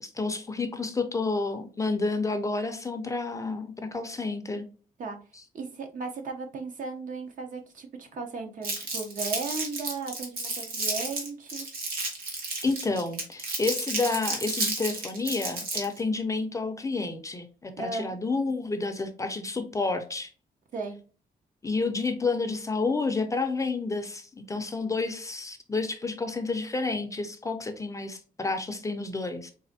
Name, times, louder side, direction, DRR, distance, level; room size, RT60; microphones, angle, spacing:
voice 1, 0.0-4.7 12.6-20.3 21.6-29.5, left 3 dB, 20° left, 7 dB, 0.4 m, -30 dB
voice 2, 5.5-11.7 17.8-18.1 20.7-21.0, right 4 dB, 60° right, 4 dB, 0.7 m, -36 dB
Crumpling crinkling, 8.6-16.0, right 3 dB, 85° right, 1.2 m, -32 dB
4.1 x 2.5 x 2.6 m, 0.38 s
wide cardioid pair, 140°, 15 cm